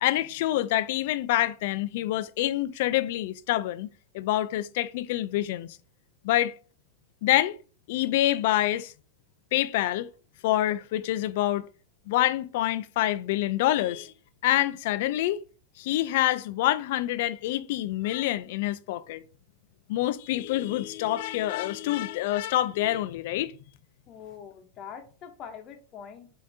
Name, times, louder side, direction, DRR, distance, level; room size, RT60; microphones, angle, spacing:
voice 1, 0.0-3.9 4.1-5.7 6.2-6.5 7.2-7.6 7.9-8.9 9.5-10.1 10.4-11.7 12.1-14.1 14.4-15.4 15.8-19.2 19.9-23.6, left 14 dB, 65° left, 0.3 m, -26 dB
voice 2, 24.1-26.3, left 7 dB, 40° left, 0.6 m, -44 dB
5.3 x 2.6 x 2.6 m
supercardioid pair, 130°, 0 cm